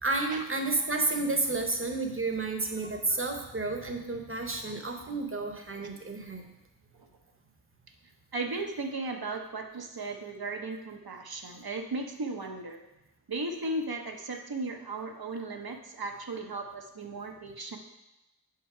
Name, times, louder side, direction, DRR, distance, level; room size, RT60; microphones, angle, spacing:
voice 1, 0.0-6.5, right 3 dB, 35° right, 4 dB, 0.9 m, -31 dB
voice 2, 8.3-12.8 13.3-17.8, right 2 dB, 70° right, 3 dB, 0.9 m, -36 dB
5.8 x 5.4 x 4.9 m, 0.94 s
wide cardioid pair, 55°, 39 cm